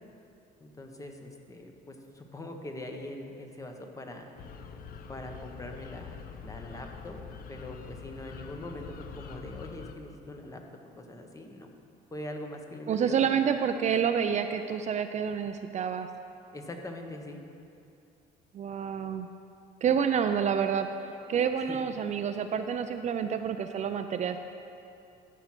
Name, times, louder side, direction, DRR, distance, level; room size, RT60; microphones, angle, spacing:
voice 1, 0.6-4.4 5.1-7.2 7.5-10.6 11.0-11.7 12.1-13.3 16.5-17.4 21.6-21.8, left 1 dB, 20° left, 3 dB, 1.0 m, -42 dB
sound 1, 4.4-9.9, left 6 dB, 60° left, 0.6 m, -44 dB
voice 2, 12.9-16.1 18.5-19.3 19.8-20.9 21.3-24.4, right 7 dB, 45° right, 8 dB, 0.4 m, -28 dB
12.5 x 4.7 x 5.9 m, 2.7 s
cardioid pair, 110°, 17 cm